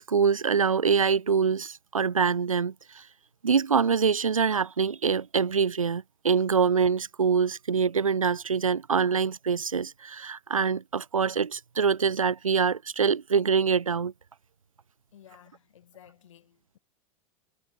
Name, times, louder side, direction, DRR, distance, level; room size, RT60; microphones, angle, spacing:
voice 1, 0.0-3.0 3.4-14.1, right 6 dB, 85° right, 0.5 m, -25 dB
voice 2, 15.1-16.8, left 11 dB, 65° left, 5.2 m, -55 dB
figure-of-eight pair, 85°, 17 cm